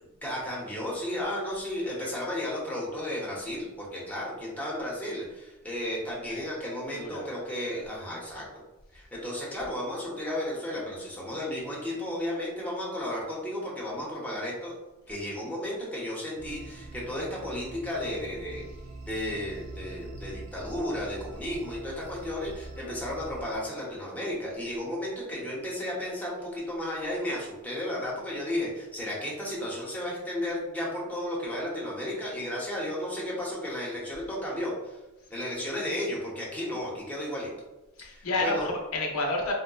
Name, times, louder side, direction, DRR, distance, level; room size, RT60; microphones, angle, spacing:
voice 1, 0.2-8.6 8.9-14.7 15.1-18.6 19.1-35.0 35.3-37.5 38.0-38.7, left 1 dB, 5° left, -5 dB, 0.6 m, -33 dB
voice 2, 6.9-7.3 38.0-39.6, left 2 dB, 80° left, 0 dB, 0.6 m, -30 dB
sound 1, 16.4-23.6, right 2 dB, 80° right, 0.4 m, -44 dB
3.8 x 2.0 x 2.3 m, 1.1 s
head